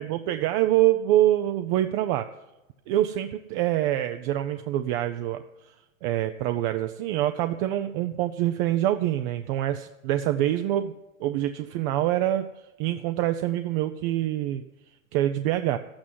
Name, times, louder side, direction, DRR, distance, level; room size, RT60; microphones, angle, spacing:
voice 1, 0.0-2.3 2.9-10.9 11.2-15.8, right 13 dB, 40° right, 9 dB, 0.6 m, -26 dB
12.5 x 8.8 x 7.5 m, 1.0 s
hypercardioid pair, 125°, 41 cm